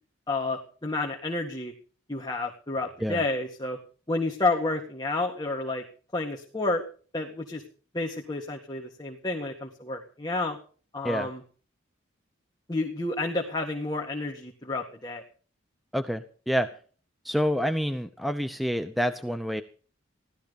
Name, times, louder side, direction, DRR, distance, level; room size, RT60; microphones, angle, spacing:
voice 1, 0.3-1.7 2.1-3.8 4.1-5.8 6.1-6.8 7.1-7.6 7.9-10.6 10.9-11.4 12.7-15.2, left 2 dB, 20° left, 0 dB, 1.9 m, -30 dB
voice 2, 15.9-16.7 17.2-19.6, equal, ahead, 8 dB, 0.7 m, -28 dB
16.0 x 13.0 x 5.3 m, 0.41 s
head